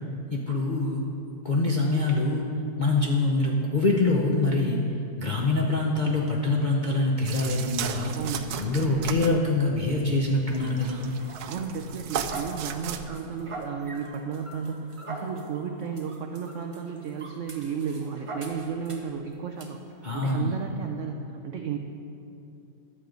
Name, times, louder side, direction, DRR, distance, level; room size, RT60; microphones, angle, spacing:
voice 1, 0.3-1.0 1.4-2.4 2.8-4.8 5.2-8.1 8.5-11.1 20.0-20.5, left 2 dB, 55° left, -3 dB, 0.5 m, -24 dB
sound 1, 7.2-13.0, right 8 dB, 70° right, 1.0 m, -36 dB
voice 2, 8.1-8.6 11.5-21.8, right 6 dB, 85° right, 4 dB, 0.6 m, -33 dB
sound 2, 10.5-19.2 19.6-19.7 20.2-20.4, right 2 dB, 35° right, 0.5 m, -43 dB
11.5 x 7.8 x 5.1 m, 2.8 s
omnidirectional pair, 1.9 m